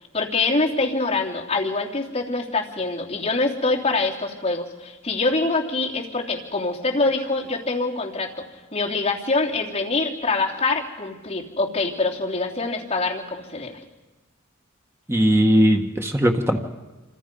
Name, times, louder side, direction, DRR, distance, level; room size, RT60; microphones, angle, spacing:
voice 1, 0.1-8.3 8.7-13.8, left 3 dB, 30° left, -3 dB, 3.1 m, -24 dB
voice 2, 15.1-16.6, equal, 10° right, 4 dB, 1.5 m, -18 dB
26.5 x 26.5 x 5.4 m, 1.2 s
head